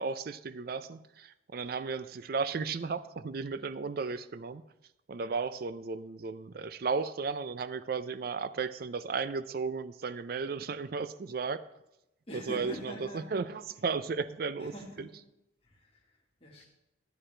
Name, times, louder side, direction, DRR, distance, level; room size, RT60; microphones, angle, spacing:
voice 1, 0.0-4.6 5.1-11.7 12.3-14.7, right 5 dB, 50° right, 14 dB, 0.4 m, -34 dB
voice 2, 12.3-13.3 14.6-15.1 15.6-16.7, equal, 30° left, -3 dB, 1.9 m, -44 dB
10.5 x 9.9 x 3.3 m, 0.89 s
head